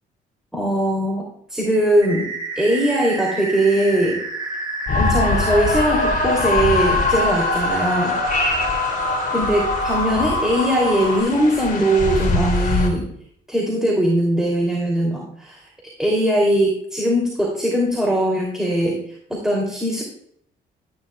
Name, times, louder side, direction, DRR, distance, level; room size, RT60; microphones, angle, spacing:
voice 1, 0.5-2.3 2.5-4.2 4.9-8.1 9.3-13.1 13.5-15.6 16.0-19.0 19.4-20.0, right 1 dB, 5° right, -1 dB, 3.1 m, -20 dB
sound 1, 2.0-11.2, right 2 dB, 20° right, 3.9 m, -29 dB
sound 2, 4.9-12.9, left 3 dB, 45° left, 3.1 m, -22 dB
13.5 x 11.0 x 2.4 m, 0.68 s
cardioid pair, 90°, 20 cm